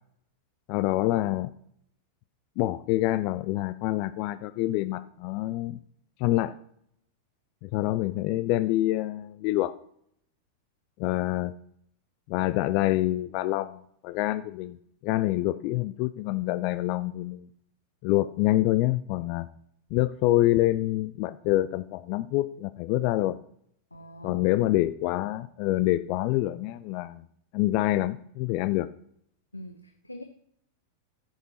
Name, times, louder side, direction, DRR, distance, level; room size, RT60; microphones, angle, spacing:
voice 1, 0.7-1.5 2.6-5.8 6.2-6.6 7.6-9.7 11.0-11.5 12.3-13.8 14.0-14.8 15.0-17.5 18.0-19.5 19.9-23.4 24.2-27.2 27.5-28.9, left 16 dB, 45° left, 14 dB, 0.4 m, -26 dB
voice 2, 23.9-24.7 29.5-30.2, left 1 dB, 85° left, 7 dB, 0.7 m, -44 dB
10.0 x 7.3 x 4.1 m, 0.68 s
figure-of-eight pair, 90°, 0 cm